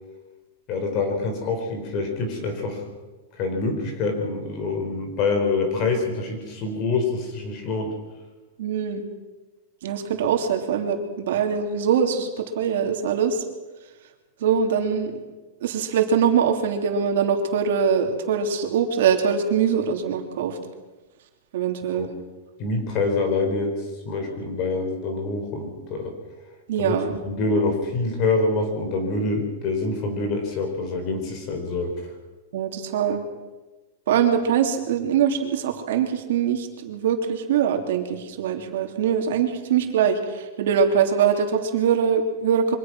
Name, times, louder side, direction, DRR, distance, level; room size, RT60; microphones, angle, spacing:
voice 1, 0.7-2.8 3.4-8.0 21.9-22.1 22.6-26.1 26.8-27.0 27.2-32.1, left 3 dB, 35° left, 5 dB, 4.7 m, -26 dB
voice 2, 8.6-9.0 9.8-13.4 14.4-15.2 15.6-20.6 21.5-22.1 26.7-27.1 32.5-33.2 34.1-42.8, right 7 dB, 65° right, 4 dB, 3.0 m, -23 dB
24.5 x 18.5 x 6.2 m, 1.2 s
supercardioid pair, 165°, 0 cm